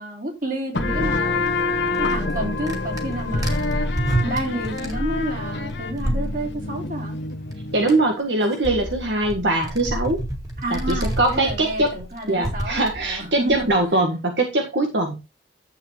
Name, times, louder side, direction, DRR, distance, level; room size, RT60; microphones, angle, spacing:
voice 1, 0.0-1.5 2.0-3.9 4.2-7.1 10.6-13.7, right 1 dB, 45° right, 3.6 m, -30 dB
sound 1, 0.7-8.0, left 3 dB, 70° left, 1.4 m, -27 dB
sound 2, 1.0-6.6 7.5-7.6 7.8-13.8, right 1 dB, 20° right, 2.1 m, -30 dB
voice 2, 7.7-10.2 10.7-12.0 12.3-15.2, right 2 dB, 75° right, 1.7 m, -22 dB
11.0 x 7.9 x 3.1 m
head